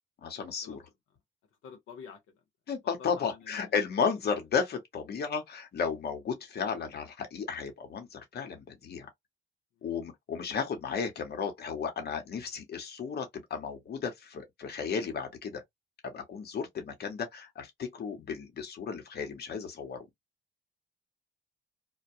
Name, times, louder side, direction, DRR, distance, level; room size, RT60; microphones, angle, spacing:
voice 1, 0.2-0.8 2.7-9.1 9.8-15.6 16.0-20.1, left 6 dB, 55° left, 1.0 m, -34 dB
voice 2, 1.6-2.2 3.0-3.7 9.8-9.9, left 6 dB, 85° left, 0.8 m, -47 dB
2.2 x 2.2 x 2.7 m
cardioid pair, 90°, 20 cm